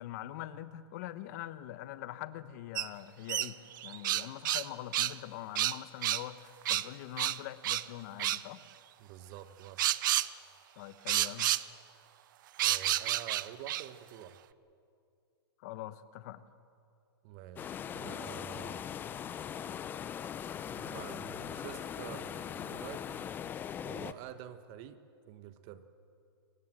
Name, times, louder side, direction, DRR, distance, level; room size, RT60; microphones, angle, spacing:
voice 1, 0.0-8.6 10.8-11.5 15.6-16.4, left 13 dB, 45° left, 14 dB, 1.1 m, -43 dB
sound 1, 2.8-2.9 3.3-4.7 4.9-5.1 5.6-6.3 6.7-6.9 7.2-7.9 8.2-8.4 9.8-10.3 11.1-11.6 12.6-13.9, right 14 dB, 55° right, 0.6 m, -30 dB
voice 2, 9.0-9.8 12.6-14.4 17.2-18.8 20.7-23.4 23.8-25.0 25.3-25.8, right 11 dB, 35° right, 11 dB, 1.3 m, -48 dB
sound 2, 17.6-24.1, left 9 dB, 15° left, 0.5 m, -40 dB
23.5 x 19.0 x 7.5 m, 2.5 s
hypercardioid pair, 145°, 13 cm